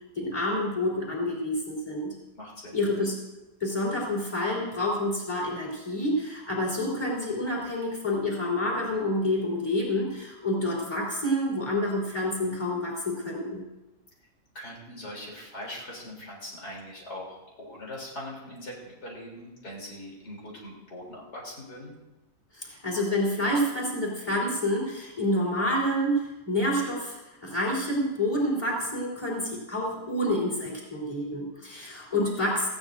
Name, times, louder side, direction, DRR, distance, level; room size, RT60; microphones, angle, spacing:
voice 1, 0.2-2.1 2.7-3.2 3.6-13.6 22.5-32.7, left 1 dB, 20° left, -4 dB, 3.9 m, -28 dB
voice 2, 2.4-2.8 14.5-21.9, left 1 dB, 80° left, -4 dB, 4.0 m, -41 dB
18.5 x 15.5 x 2.6 m, 1.0 s
omnidirectional pair, 1.6 m